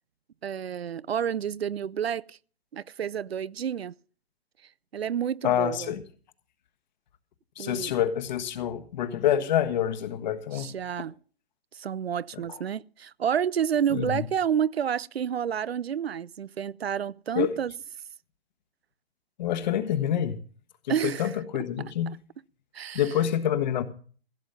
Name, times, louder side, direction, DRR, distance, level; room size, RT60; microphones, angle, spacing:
voice 1, 0.4-2.4 2.7-3.9 4.9-5.9 7.6-7.9 10.5-11.1 11.7-17.7 20.9-21.3 22.7-23.0, right 8 dB, 85° right, 0.6 m, -29 dB
voice 2, 5.4-6.0 7.6-10.7 12.3-12.6 13.9-14.3 17.3-17.5 19.4-20.4 20.8-22.1 22.9-23.8, left 10 dB, 45° left, 1.4 m, -27 dB
15.5 x 7.6 x 6.8 m
hypercardioid pair, 135°, 30 cm